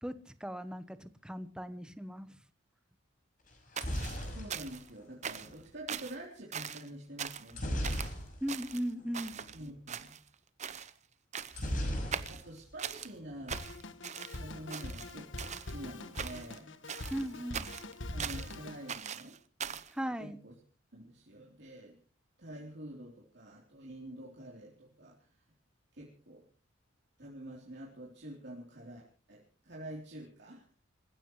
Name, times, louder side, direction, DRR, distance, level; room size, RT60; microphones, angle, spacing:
voice 1, 0.0-2.3 8.4-9.4 17.1-17.7 20.0-20.4, equal, 5° right, 12 dB, 1.0 m, -38 dB
sound 1, 3.5-5.6 7.5-8.7 9.0-9.1 9.4-9.6 11.5-12.7 13.0-13.6, equal, 45° left, 6.0 m, -37 dB
sound 2, 3.8-4.9 5.2-5.6 5.9-6.2 6.5-6.9 7.2-7.5 7.8-8.1 8.5-9.6 9.9-10.3 10.6-10.9 11.3-11.7 12.1-13.1 13.5-14.4 14.7-15.7 16.1-16.6 16.9-18.5 18.9-19.9, right 7 dB, 35° right, 0.8 m, -41 dB
voice 2, 4.3-7.9 9.5-10.2 11.8-13.7 14.4-16.7 18.1-19.4 19.7-19.8 20.2-20.6 20.9-21.9 22.4-25.3 25.9-26.4 27.2-30.7, right 1 dB, 60° right, -3 dB, 3.6 m, -47 dB
Drum kit, 13.5-18.9, left 2 dB, 70° left, 1.4 m, -44 dB
27.5 x 15.5 x 3.2 m, 0.38 s
head